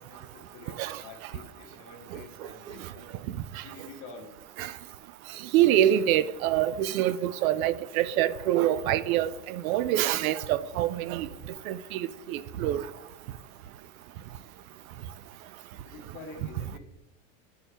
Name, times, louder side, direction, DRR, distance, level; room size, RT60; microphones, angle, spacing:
voice 1, 0.0-3.0 3.6-4.3 15.8-16.8, left 3 dB, 30° left, 1.3 m, -47 dB
voice 2, 5.5-11.3 11.7-12.8, right 12 dB, 70° right, 0.6 m, -25 dB
9.9 x 4.5 x 3.3 m
supercardioid pair, 150°, 43 cm